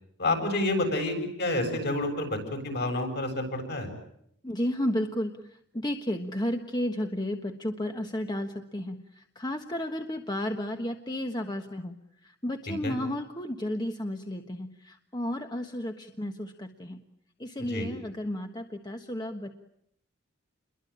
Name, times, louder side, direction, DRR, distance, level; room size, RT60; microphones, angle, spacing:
voice 1, 0.2-3.9 12.8-13.0 17.7-17.9, left 2 dB, 55° left, 5 dB, 7.8 m, -29 dB
voice 2, 4.4-12.0 12.2-17.0 17.4-19.5, left 1 dB, 20° left, 5 dB, 1.4 m, -33 dB
29.0 x 23.0 x 8.9 m, 0.74 s
head